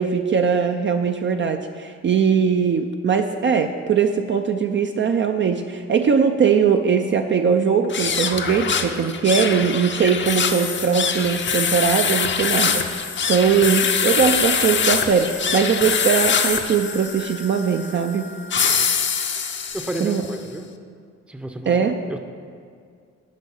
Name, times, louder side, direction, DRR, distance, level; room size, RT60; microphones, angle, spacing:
voice 1, 0.0-18.3 20.0-20.2 21.7-21.9, right 6 dB, 40° right, 5 dB, 0.5 m, -20 dB
sound 1, 7.8-20.3, left 6 dB, 40° left, 0.7 m, -24 dB
voice 2, 19.7-20.7 21.3-21.7 22.1-22.2, right 1 dB, 5° right, 6 dB, 0.7 m, -30 dB
10.5 x 5.3 x 5.4 m, 2.2 s
cardioid pair, 90°, 30 cm